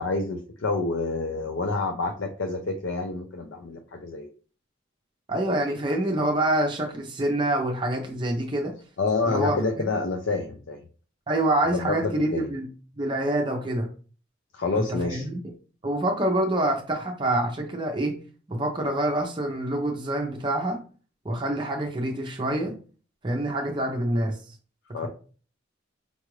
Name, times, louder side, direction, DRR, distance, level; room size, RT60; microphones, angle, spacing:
voice 1, 0.0-4.3 9.0-10.8 11.7-12.5 14.5-15.3 24.9-25.1, left 3 dB, 70° left, 4 dB, 0.5 m, -28 dB
voice 2, 5.3-8.7 9.2-9.9 11.3-12.7 13.0-13.9 14.8-15.4 15.8-18.2 18.5-20.8 21.2-22.8 23.2-24.4 24.9-25.1, right 1 dB, 25° right, 1 dB, 0.6 m, -26 dB
5.2 x 2.4 x 3.1 m, 0.39 s
head